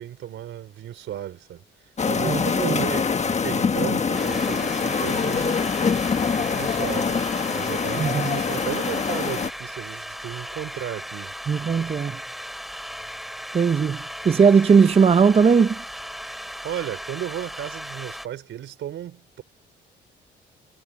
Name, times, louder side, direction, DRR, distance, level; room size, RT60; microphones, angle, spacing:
voice 1, 0.0-5.7 6.3-11.3 16.6-19.4, right 11 dB, 75° right, 4.5 m, -34 dB
sound 1, 2.0-9.5, left 5 dB, 35° left, 1.4 m, -24 dB
voice 2, 2.2-2.8 8.0-8.4 11.5-12.2 13.5-15.8, right 6 dB, 30° right, 0.6 m, -19 dB
sound 2, 4.1-18.3, equal, ahead, 2.5 m, -37 dB
cardioid pair, 90°, 20 cm